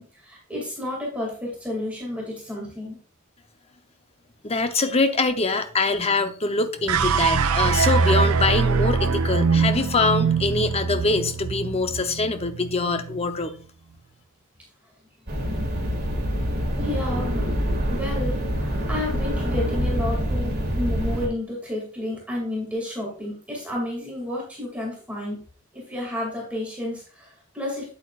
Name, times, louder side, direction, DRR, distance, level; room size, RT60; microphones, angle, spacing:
voice 1, 0.0-3.0 5.9-6.0 16.8-17.4 17.9-25.4 25.7-27.9, left 1 dB, 5° right, 2.3 m, -31 dB
voice 2, 4.4-13.5, left 3 dB, 30° left, 0.7 m, -24 dB
sound 1, 6.9-13.3, right 5 dB, 85° right, 0.5 m, -22 dB
sound 2, 15.3-21.3, equal, 45° right, 2.2 m, -25 dB
8.8 x 8.3 x 2.4 m
head